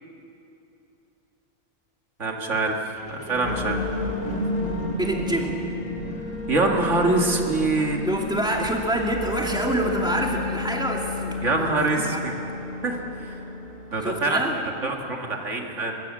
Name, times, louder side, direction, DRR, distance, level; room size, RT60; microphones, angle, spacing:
voice 1, 2.2-3.8 6.5-8.0 11.4-12.3 12.8-13.4 13.9-14.4 14.8-16.0, right 3 dB, 80° right, 1 dB, 2.4 m, -24 dB
sound 1, 2.9-10.4 11.0-11.1, equal, 50° right, 2.5 m, -37 dB
sound 2, 3.4-14.9, left 3 dB, 40° left, 2.6 m, -32 dB
voice 2, 5.0-5.6 8.0-12.2 14.0-14.6, right 1 dB, 5° right, -1 dB, 2.6 m, -27 dB
24.5 x 21.5 x 7.4 m, 2.8 s
omnidirectional pair, 1.2 m